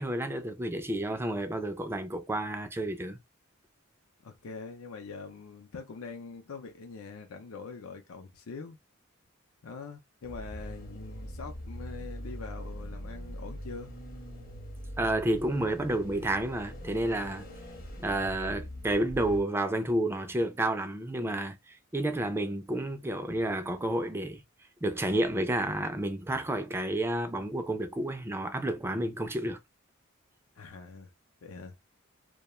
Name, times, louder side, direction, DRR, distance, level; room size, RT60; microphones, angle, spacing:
voice 1, 0.0-3.2 15.0-17.5 18.0-21.6 21.9-24.4 24.8-29.6, right 1 dB, 10° right, 0.3 m, -30 dB
voice 2, 4.2-8.8 9.6-13.9 30.6-31.1 31.4-31.8, left 4 dB, 90° left, 0.5 m, -43 dB
sound 1, 10.2-19.4, equal, 45° left, 0.8 m, -42 dB
2.3 x 2.2 x 2.9 m
head